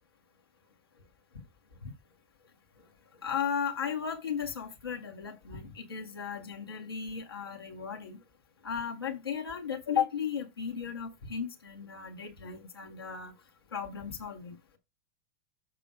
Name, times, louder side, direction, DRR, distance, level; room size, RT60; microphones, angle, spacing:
voice 1, 3.2-8.2 8.6-13.3 13.7-14.6, left 7 dB, 20° left, 0.3 m, -35 dB
6.8 x 4.9 x 4.8 m
supercardioid pair, 175°, 45 cm